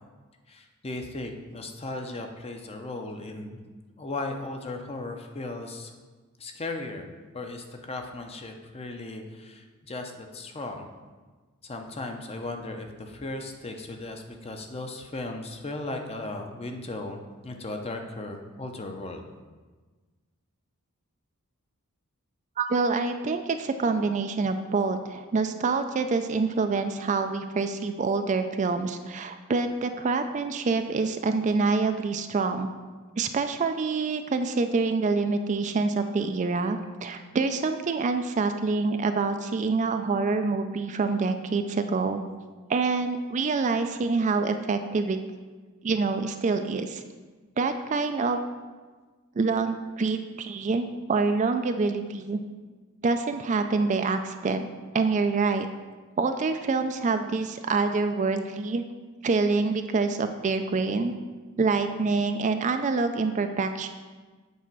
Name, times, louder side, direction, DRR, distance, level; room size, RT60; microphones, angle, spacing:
voice 1, 0.5-3.6 4.0-5.9 6.4-7.1 7.3-10.9 11.6-19.2, left 2 dB, 25° left, 4 dB, 0.7 m, -36 dB
voice 2, 22.6-32.7 33.2-42.2 42.7-45.2 45.8-47.0 47.6-48.4 49.4-52.4 53.0-54.7 54.9-55.7 56.2-58.8 59.2-61.1 61.6-63.9, right 4 dB, 35° right, 7 dB, 0.3 m, -26 dB
8.2 x 4.2 x 6.0 m, 1.4 s
head